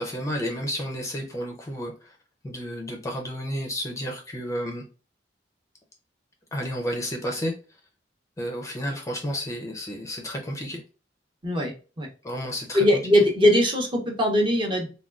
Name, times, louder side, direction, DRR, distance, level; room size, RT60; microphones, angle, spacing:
voice 1, 0.0-2.2 2.4-4.8 6.5-7.5 8.4-10.8 12.2-12.8, equal, 15° left, 2 dB, 0.5 m, -31 dB
voice 2, 12.7-14.9, left 1 dB, 30° right, 1 dB, 0.7 m, -20 dB
3.5 x 2.2 x 2.3 m, 0.34 s
head